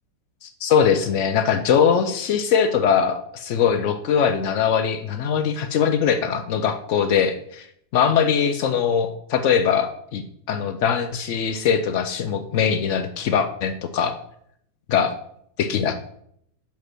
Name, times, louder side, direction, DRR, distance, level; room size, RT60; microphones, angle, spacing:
voice 1, 0.4-7.6 7.9-14.1 14.9-15.1 15.6-15.9, left 7 dB, 85° left, 8 dB, 0.6 m, -21 dB
5.3 x 5.2 x 6.0 m, 0.69 s
omnidirectional pair, 1.9 m